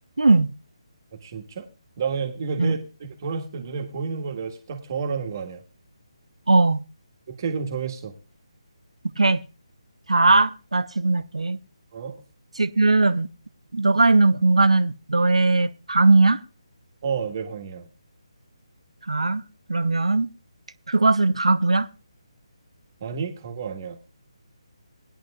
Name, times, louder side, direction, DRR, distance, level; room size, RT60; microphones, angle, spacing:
voice 1, 0.2-0.5 2.6-2.7 6.5-6.8 9.2-9.4 10.1-11.6 12.6-13.3 13.7-16.4 19.1-19.4 19.7-20.3 20.9-21.9, right 3 dB, 75° right, 0.8 m, -19 dB
voice 2, 1.1-1.7 2.0-5.6 7.3-8.1 11.9-12.2 17.0-17.9 23.0-24.0, right 5 dB, 35° right, 1.6 m, -30 dB
19.5 x 10.5 x 2.4 m
figure-of-eight pair, 150°, 3 cm